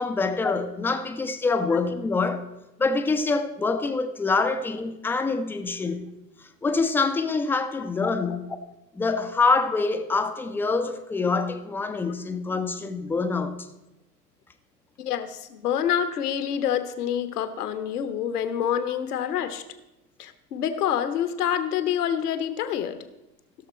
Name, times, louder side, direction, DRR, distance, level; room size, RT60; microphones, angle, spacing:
voice 1, 0.0-2.4 2.8-6.1 6.4-8.6 8.9-13.6, left 4 dB, 5° left, 0.5 m, -25 dB
voice 2, 15.0-19.6 20.2-23.1, left 9 dB, 70° left, 1.2 m, -27 dB
15.5 x 6.7 x 4.3 m
figure-of-eight pair, 90°, 48 cm